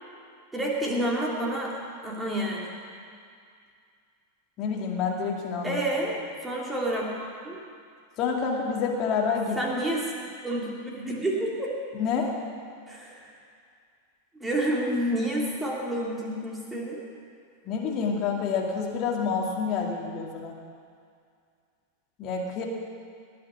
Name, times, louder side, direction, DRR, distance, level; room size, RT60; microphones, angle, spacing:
voice 1, 0.5-1.8 2.0-2.7 5.6-6.1 6.4-7.6 9.6-10.1 10.4-11.7 12.9-13.3 14.4-17.0, right 1 dB, 10° right, -3 dB, 2.9 m, -29 dB
voice 2, 4.6-5.8 8.2-9.6 12.0-12.3 17.7-20.5 22.2-22.6, left 5 dB, 35° left, -1 dB, 2.3 m, -28 dB
19.0 x 6.6 x 8.3 m, 2.2 s
figure-of-eight pair, 90°, 0 cm